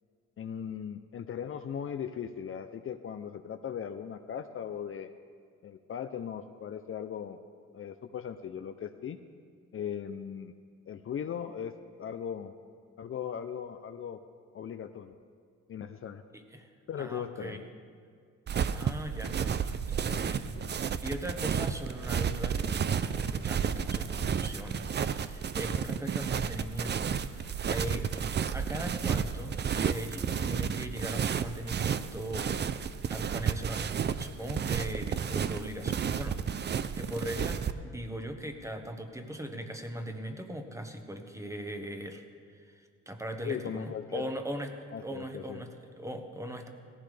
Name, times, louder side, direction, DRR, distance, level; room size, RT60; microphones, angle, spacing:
voice 1, 0.4-5.1 5.6-7.4 7.7-9.2 9.7-10.5 10.9-11.7 12.0-12.5 13.0-14.2 14.5-15.1 15.7-16.2 16.9-17.6 20.6-20.7 43.5-44.3 44.9-45.6, left 8 dB, 45° left, 8 dB, 0.6 m, -38 dB
voice 2, 16.3-16.7 17.0-17.6 18.7-42.2 42.5-46.7, right 1 dB, 10° right, 5 dB, 1.2 m, -40 dB
sound 1, 18.5-37.7, right 7 dB, 35° right, 0.5 m, -32 dB
17.5 x 15.0 x 3.4 m, 2.1 s
cardioid pair, 90°, 30 cm